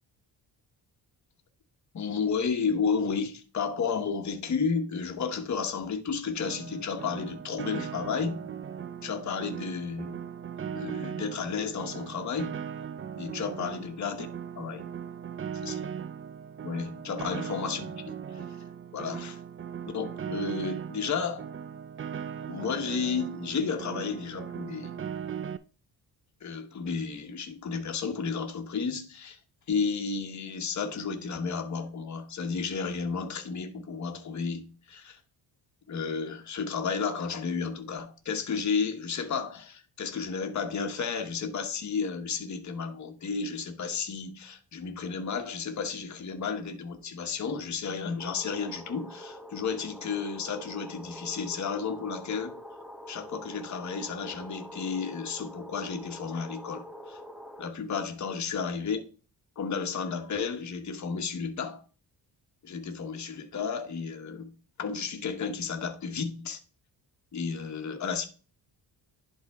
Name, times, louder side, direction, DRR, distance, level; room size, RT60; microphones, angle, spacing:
voice 1, 1.9-8.4 9.0-10.2 10.7-12.6 13.2-14.3 14.6-14.8 15.6-15.8 16.6-18.6 18.9-19.4 19.9-21.4 22.5-24.9 26.4-29.4 29.7-35.2 35.9-52.6 53.1-57.2 57.6-59.0 59.6-61.8 62.6-64.5 64.8-66.6 67.3-68.3, left 5 dB, 45° left, 1.3 m, -32 dB
Piano, 6.4-25.6, right 8 dB, 30° right, 0.4 m, -39 dB
sound 1, 48.2-57.7, equal, ahead, 0.8 m, -45 dB
11.0 x 3.8 x 3.5 m
cardioid pair, 115°, 41 cm